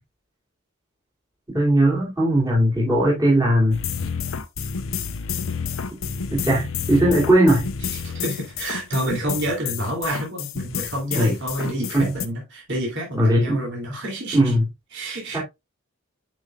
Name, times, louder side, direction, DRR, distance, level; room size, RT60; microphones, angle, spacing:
voice 1, 1.5-3.8 6.3-7.7 11.1-11.3 11.9-12.1 13.2-13.6 14.3-14.6 15.3-15.4, right 1 dB, 15° right, 2.8 m, -18 dB
sound 1, 3.7-12.3, left 6 dB, 65° left, 0.7 m, -30 dB
voice 2, 7.9-14.5 14.9-15.4, right 1 dB, 55° right, 2.9 m, -28 dB
9.1 x 5.4 x 2.4 m
head